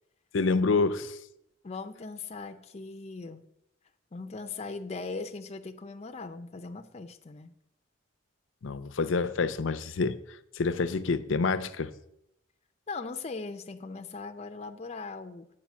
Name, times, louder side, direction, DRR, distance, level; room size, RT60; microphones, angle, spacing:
voice 1, 0.3-1.2 8.6-10.2 10.6-11.9, left 4 dB, 85° left, 0.5 m, -27 dB
voice 2, 1.6-3.5 4.1-7.5 12.9-15.5, left 4 dB, 35° left, 0.5 m, -39 dB
8.7 x 4.9 x 7.1 m
head